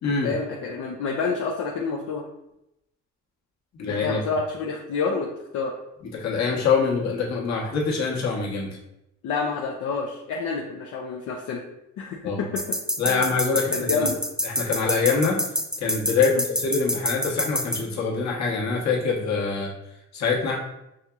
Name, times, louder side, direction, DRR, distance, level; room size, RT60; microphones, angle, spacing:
voice 1, 0.2-2.3 3.9-5.7 9.2-11.6 12.0-12.8 13.0-13.2 13.7-14.2 16.3-16.4, left 4 dB, 80° left, -1 dB, 0.6 m, -28 dB
voice 2, 3.8-4.2 6.1-8.7 12.2-12.4 13.0-14.1 14.4-15.4 15.8-19.7 20.1-20.6, left 5 dB, 65° left, -2 dB, 1.1 m, -24 dB
sound 1, 12.6-17.8, equal, ahead, 0.4 m, -26 dB
6.2 x 2.8 x 2.3 m, 0.86 s
cardioid pair, 90°, 30 cm